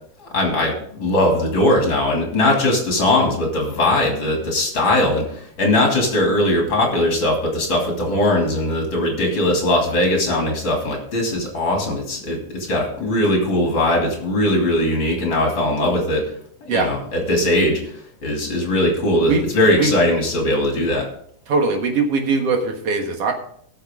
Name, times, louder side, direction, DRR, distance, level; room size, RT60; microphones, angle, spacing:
voice 1, 0.2-16.3 16.6-17.8 18.2-21.1, left 1 dB, 40° left, 0 dB, 3.2 m, -20 dB
voice 2, 21.5-23.3, right 4 dB, 55° right, 3 dB, 2.3 m, -20 dB
18.5 x 6.8 x 3.7 m, 0.64 s
omnidirectional pair, 3.6 m